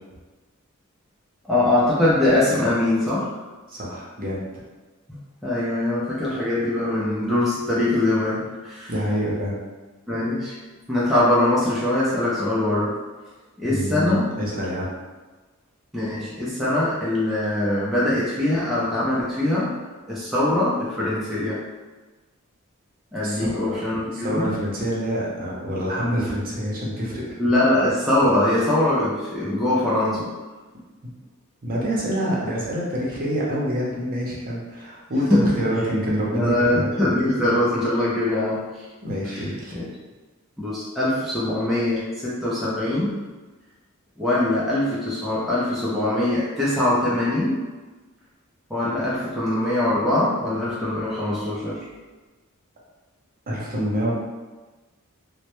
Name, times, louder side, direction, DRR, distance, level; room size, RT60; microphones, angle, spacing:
voice 1, 1.4-3.4 5.1-8.9 10.1-10.5 10.9-13.0 13.6-14.3 15.9-19.7 20.1-21.6 23.1-24.6 27.4-30.3 35.3-35.5 36.3-38.9 39.2-39.8 40.6-43.2 44.2-47.6 48.7-51.9, left 1 dB, ahead, -9 dB, 0.4 m, -22 dB
voice 2, 3.7-4.4 8.9-9.6 13.7-14.9 23.2-23.8 24.1-27.2 31.6-36.9 39.0-39.8 53.5-54.1, equal, 40° right, -5 dB, 0.6 m, -26 dB
2.1 x 2.0 x 2.9 m, 1.2 s
head